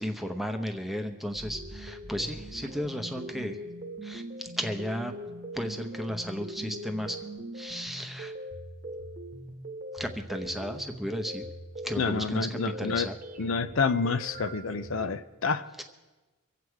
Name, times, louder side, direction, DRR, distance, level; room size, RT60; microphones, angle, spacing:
voice 1, 0.0-3.6 4.0-5.1 5.5-7.2 7.5-8.3 9.9-11.4 11.8-13.2 15.8-15.9, equal, ahead, 6 dB, 0.8 m, -34 dB
sound 1, 1.3-15.2, right 1 dB, 35° right, 1.1 m, -41 dB
voice 2, 12.0-13.1 13.4-15.8, left 4 dB, 65° left, 11 dB, 0.6 m, -29 dB
24.5 x 8.3 x 4.7 m, 1.2 s
head